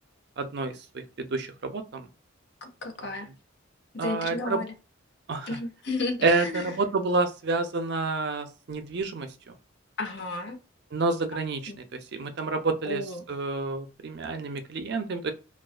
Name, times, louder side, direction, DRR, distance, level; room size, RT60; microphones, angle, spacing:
voice 1, 0.4-2.1 4.0-4.6 5.3-5.5 6.2-9.5 10.9-13.0 13.3-15.3, right 3 dB, 55° right, 7 dB, 0.5 m, -29 dB
voice 2, 2.6-3.3 3.9-4.7 5.5-6.8 10.0-10.6 11.7-11.8 12.8-13.3, left 3 dB, 55° left, 4 dB, 0.7 m, -33 dB
2.3 x 2.3 x 2.3 m, 0.31 s
head